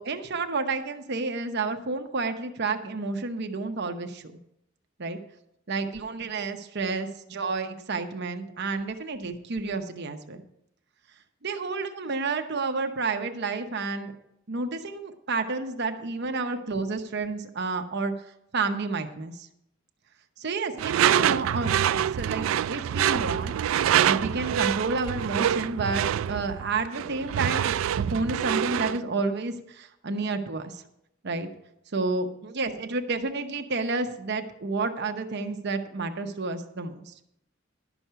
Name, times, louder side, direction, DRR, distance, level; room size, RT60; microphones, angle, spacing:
voice 1, 0.0-4.2 5.0-5.2 5.7-10.4 11.4-14.1 14.5-18.1 18.5-19.5 20.4-23.5 24.0-30.8 31.2-31.5 31.9-37.1, right 3 dB, 60° right, 6 dB, 0.9 m, -30 dB
Door / Screech, 20.8-29.0, right 10 dB, 90° right, 0.3 m, -26 dB
12.0 x 6.1 x 6.8 m, 0.79 s
head